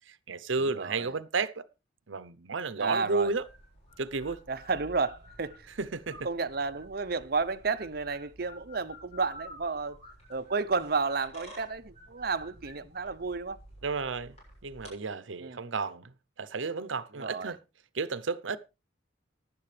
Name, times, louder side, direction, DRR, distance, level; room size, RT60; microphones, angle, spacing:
voice 1, 0.1-1.6 2.1-3.5 4.0-4.4 5.8-6.3 13.8-14.4 14.6-16.1 16.4-17.6 17.9-18.6, right 4 dB, 85° right, 0.8 m, -32 dB
voice 2, 0.6-1.1 2.8-3.3 4.5-5.7 6.2-10.0 10.3-13.6 15.4-15.6 17.2-17.5, right 4 dB, 50° right, 0.7 m, -32 dB
sound 1, 3.2-14.9, equal, 35° left, 7.1 m, -51 dB
15.5 x 11.0 x 3.3 m
head